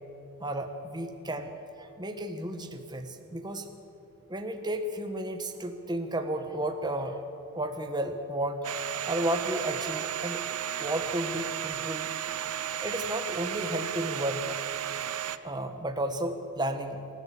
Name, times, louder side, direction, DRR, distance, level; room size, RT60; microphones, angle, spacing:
voice 1, 0.4-1.5 1.8-3.7 4.3-7.2 7.5-8.6 9.1-10.4 10.8-12.1 12.8-14.4 15.4-17.0, right 1 dB, 20° right, 6 dB, 1.3 m, -33 dB
Domestic sounds home sounds, 8.6-15.4, right 10 dB, 90° right, 0.8 m, -34 dB
27.5 x 14.0 x 8.7 m, 2.7 s
head